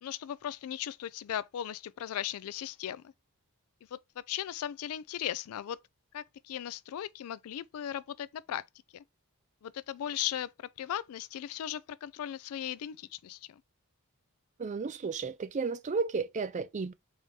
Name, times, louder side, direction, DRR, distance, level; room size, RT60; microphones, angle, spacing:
voice 1, 0.0-3.1 3.9-4.0 4.3-5.8 6.1-8.6 8.9-9.0 9.6-10.5 10.8-13.6, left 10 dB, 75° left, 0.3 m, -37 dB
voice 2, 14.6-16.9, right 4 dB, 35° right, 0.4 m, -33 dB
4.8 x 2.7 x 3.3 m
head